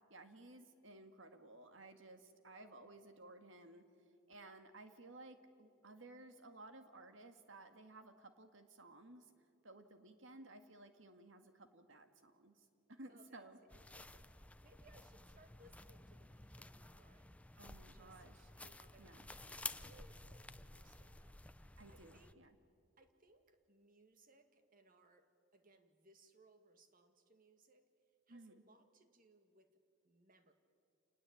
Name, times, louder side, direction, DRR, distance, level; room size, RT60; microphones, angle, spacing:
voice 1, 0.1-3.8 4.3-9.3 9.6-13.6 17.6-18.5 19.0-19.3 21.8-22.6 28.3-28.6, right 2 dB, 70° right, 7 dB, 2.0 m, -57 dB
voice 2, 13.1-17.4 17.9-18.2 18.5-21.4 21.9-22.4 23.0-27.9 28.3-29.8 30.0-30.5, right 2 dB, 45° right, 7 dB, 1.9 m, -68 dB
sound 1, 13.7-22.3, left 2 dB, 5° left, 0.6 m, -53 dB
28.0 x 20.0 x 8.6 m, 2.5 s
head